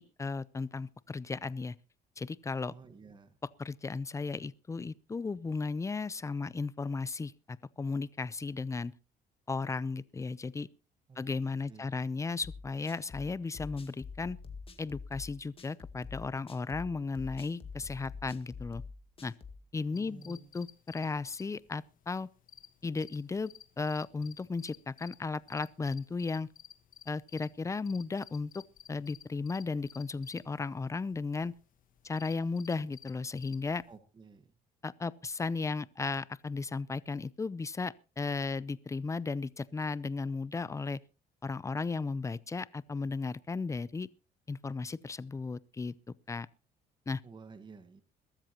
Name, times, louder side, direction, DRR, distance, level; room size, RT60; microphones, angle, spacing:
voice 1, 0.0-1.7 2.2-2.7 3.6-8.9 9.5-10.7 11.2-14.4 14.8-18.8 19.2-19.3 19.7-22.3 22.8-23.5 23.8-26.5 27.1-28.6 28.9-31.5 32.0-33.8 34.8-41.0 41.4-44.1 44.5-45.9 46.3-46.5 47.1-47.2, left 4 dB, 20° left, 0.6 m, -35 dB
voice 2, 2.7-3.4 11.1-12.0 19.9-20.5 33.9-34.5 47.2-48.0, right 5 dB, 25° right, 1.5 m, -53 dB
sound 1, 12.4-19.6, left 5 dB, 35° left, 2.1 m, -46 dB
sound 2, 19.9-34.0, left 9 dB, 55° left, 1.4 m, -56 dB
21.5 x 13.0 x 3.0 m
cardioid pair, 110°, 17 cm